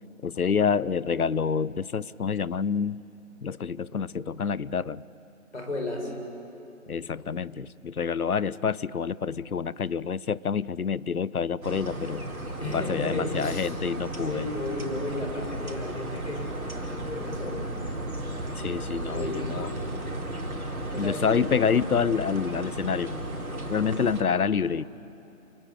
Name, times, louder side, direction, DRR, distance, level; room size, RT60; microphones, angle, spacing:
voice 1, 0.2-3.0 3.4-5.0 6.9-12.3 12.7-14.5 18.6-19.7 21.0-23.2 23.7-24.9, left 6 dB, 85° left, 20 dB, 0.7 m, -27 dB
voice 2, 5.5-6.2 12.6-13.7 14.0-17.7 19.1-19.7 20.6-21.4, left 2 dB, 50° left, 2 dB, 5.0 m, -34 dB
sound 1, 11.6-24.2, right 1 dB, 75° right, 4.2 m, -34 dB
27.5 x 18.5 x 8.0 m, 2.8 s
figure-of-eight pair, 170°, 43 cm